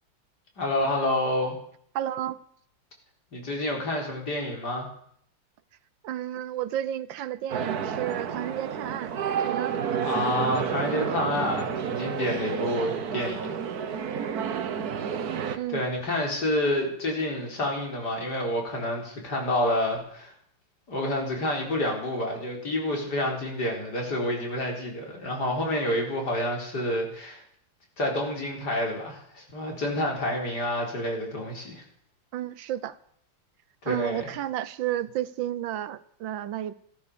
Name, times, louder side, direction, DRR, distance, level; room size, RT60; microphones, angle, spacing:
voice 1, 0.6-1.6 3.3-4.9 10.0-13.5 15.7-20.3 20.9-27.4 28.0-31.8 33.8-34.3, left 1 dB, 60° left, 4.7 m, -28 dB
voice 2, 1.9-2.4 6.0-9.2 9.4-9.8 15.5-15.8 32.3-33.0 33.9-36.7, right 12 dB, 90° right, 1.6 m, -32 dB
sound 1, 7.5-15.6, right 7 dB, 60° right, 1.6 m, -30 dB
15.0 x 13.5 x 6.8 m
omnidirectional pair, 2.0 m